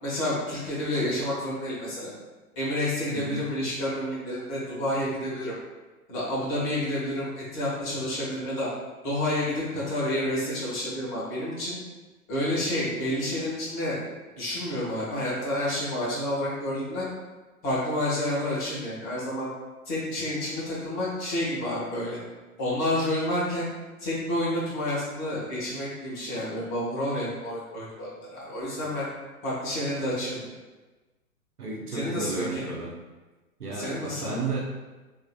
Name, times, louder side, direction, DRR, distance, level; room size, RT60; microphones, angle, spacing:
voice 1, 0.0-2.1 2.6-5.5 6.1-8.7 9.0-11.8 12.3-14.0 14.3-17.1 17.6-19.5 19.8-22.2 22.6-23.7 24.0-29.1 29.4-30.5 31.9-32.7 33.7-34.5, left 1 dB, 35° left, -7 dB, 1.1 m, -29 dB
voice 2, 3.1-3.4 31.6-32.9 33.6-34.6, right 3 dB, 90° right, -2 dB, 0.8 m, -33 dB
2.9 x 2.5 x 2.2 m, 1.2 s
figure-of-eight pair, 115°, 44 cm